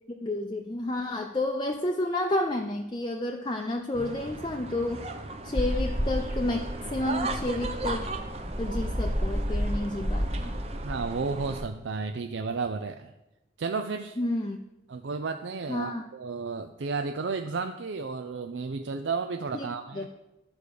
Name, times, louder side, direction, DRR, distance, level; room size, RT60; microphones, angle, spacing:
voice 1, 0.1-5.1 5.4-8.0 8.6-10.6 14.2-14.6 15.7-16.0 19.5-19.7 19.9-20.1, left 1 dB, 25° left, 3 dB, 0.5 m, -30 dB
sound 1, 3.9-11.6, right 2 dB, 35° right, 0.7 m, -37 dB
sound 2, 5.6-11.7, equal, 10° right, 1.4 m, -31 dB
voice 2, 10.8-13.1 13.6-14.2 14.9-20.1, right 4 dB, 80° right, 7 dB, 0.5 m, -32 dB
12.0 x 4.9 x 6.8 m, 0.97 s
head